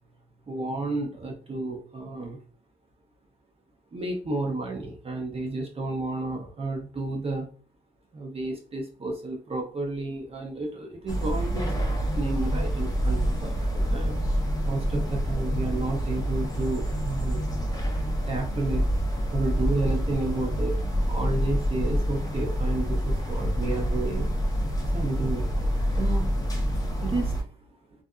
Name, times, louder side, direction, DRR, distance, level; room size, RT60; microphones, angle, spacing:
voice 1, 0.5-2.4 3.9-7.5 8.1-14.2 14.7-17.4 18.3-20.8 21.1-24.3 24.9-26.3 27.0-27.4, right 2 dB, 30° right, 1 dB, 0.6 m, -32 dB
sound 1, 11.1-27.4, equal, 20° left, 0.6 m, -27 dB
2.5 x 2.4 x 2.2 m, 0.40 s
cardioid pair, 90°, 20 cm